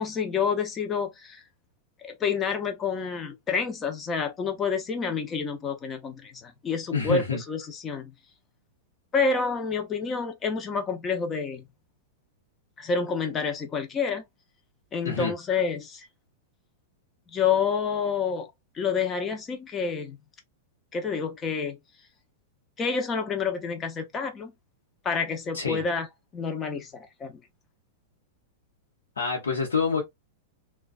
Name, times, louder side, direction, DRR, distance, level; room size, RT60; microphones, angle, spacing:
voice 1, 0.0-1.4 2.0-8.1 9.1-11.7 12.8-14.2 14.9-16.1 17.3-18.5 18.7-20.2 20.9-21.8 22.8-24.5 25.0-26.1 26.3-27.4, left 5 dB, 25° left, 0.7 m, -28 dB
voice 2, 6.9-7.4 15.0-15.3 25.5-25.8 29.2-30.0, left 5 dB, 80° left, 0.8 m, -27 dB
2.4 x 2.2 x 2.4 m
hypercardioid pair, 100°, 0 cm